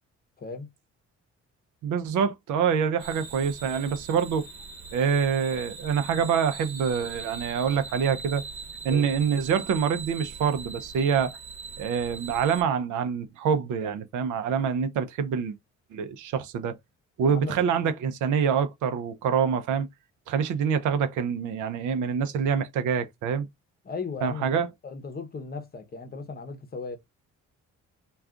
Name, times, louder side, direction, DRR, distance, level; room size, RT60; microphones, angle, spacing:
voice 1, 0.4-0.7 8.9-9.1 17.2-17.6 23.8-27.0, left 4 dB, 30° left, 0.8 m, -37 dB
voice 2, 1.8-4.4 4.9-8.4 8.8-11.4 11.8-15.5 15.9-16.8 17.2-19.9 20.3-23.5 24.2-24.7, right 7 dB, 80° right, 0.6 m, -26 dB
sound 1, 3.0-12.6, right 5 dB, 50° right, 1.1 m, -41 dB
2.4 x 2.3 x 3.5 m
cardioid pair, 90°, 30 cm